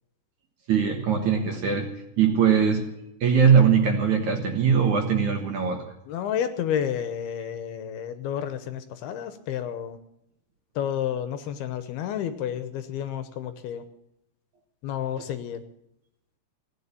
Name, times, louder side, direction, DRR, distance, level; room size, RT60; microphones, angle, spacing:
voice 1, 0.7-1.9 2.2-2.9 3.2-5.8 15.2-15.3, right 7 dB, 60° right, 4 dB, 2.3 m, -21 dB
voice 2, 6.1-10.0 10.8-13.8 14.8-15.6, left 9 dB, 75° left, 11 dB, 2.7 m, -30 dB
17.0 x 9.5 x 8.4 m, 0.84 s
omnidirectional pair, 4.9 m